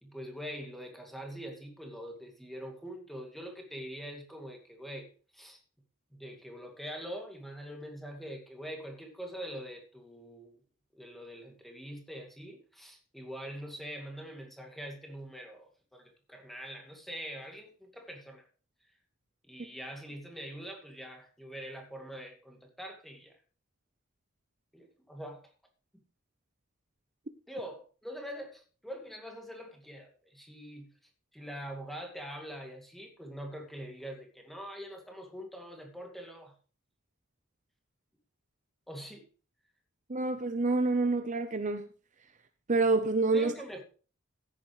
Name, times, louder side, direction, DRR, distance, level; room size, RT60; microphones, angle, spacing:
voice 1, 0.0-5.6 6.1-10.6 10.9-18.5 19.4-23.4 24.7-25.5 27.5-30.9 31.3-36.5 38.9-39.3 43.3-43.8, equal, ahead, 2.3 m, -44 dB
voice 2, 40.1-41.9 42.7-43.5, right 3 dB, 35° right, 0.7 m, -27 dB
14.5 x 10.5 x 3.2 m
head